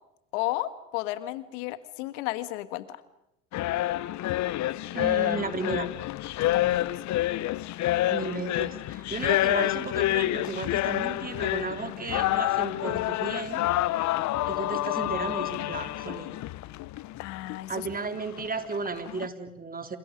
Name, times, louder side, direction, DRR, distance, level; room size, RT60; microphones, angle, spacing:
voice 1, 0.3-3.0 6.4-7.2 17.2-17.8, left 16 dB, 70° left, 13 dB, 1.7 m, -33 dB
sound 1, 3.5-19.3, left 15 dB, 50° left, 0.9 m, -28 dB
voice 2, 4.9-5.9 8.1-13.6 14.5-16.3 17.7-20.0, right 4 dB, 25° right, 7 dB, 3.5 m, -34 dB
29.0 x 28.0 x 5.3 m, 0.86 s
hypercardioid pair, 75°, 37 cm